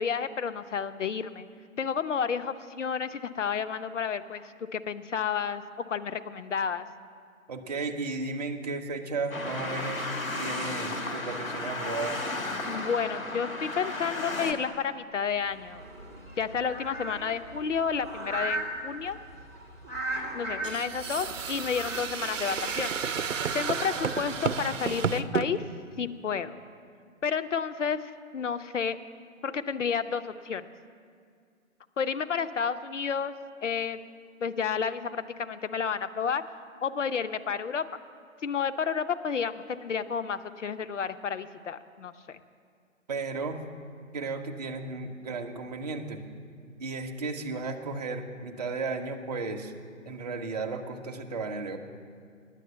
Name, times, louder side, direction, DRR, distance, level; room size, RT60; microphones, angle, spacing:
voice 1, 0.0-1.4 1.8-6.9 12.6-15.8 16.4-19.2 20.1-22.9 23.5-25.6 26.0-26.6 27.2-29.0 29.4-30.7 32.0-33.3 33.6-34.1 34.4-36.4 36.8-37.9 38.4-42.4, left 6 dB, 65° left, 12 dB, 0.7 m, -31 dB
voice 2, 7.5-10.1 10.4-12.2 43.1-43.6 44.1-46.2 46.8-49.7 50.0-51.8, right 3 dB, 30° right, 3 dB, 0.6 m, -34 dB
sound 1, 9.3-14.5, left 2 dB, 85° left, 1.4 m, -34 dB
sound 2, 15.4-25.0, right 1 dB, 10° left, 0.5 m, -39 dB
sound 3, 20.6-25.5, right 6 dB, 65° right, 0.7 m, -31 dB
10.0 x 7.8 x 7.9 m, 2.2 s
figure-of-eight pair, 140°, 40 cm